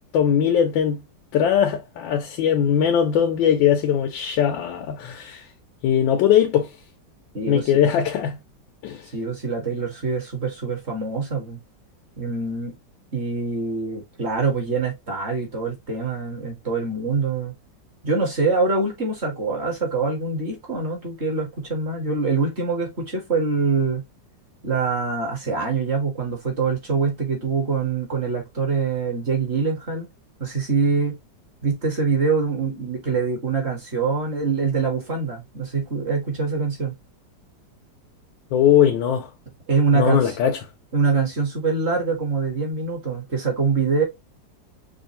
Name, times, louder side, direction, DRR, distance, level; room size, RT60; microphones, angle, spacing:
voice 1, 0.1-1.0 1.3-5.4 5.8-6.7 7.5-8.4 8.8-9.1 38.5-39.3 39.9-40.6, left 9 dB, 90° left, 1.4 m, -20 dB
voice 2, 9.1-11.6 12.2-12.7 13.1-17.5 18.0-24.0 24.6-30.1 30.4-31.2 31.6-36.9 39.7-40.3 40.9-44.0, right 4 dB, 40° right, 1.5 m, -24 dB
5.4 x 2.5 x 2.7 m
omnidirectional pair, 2.0 m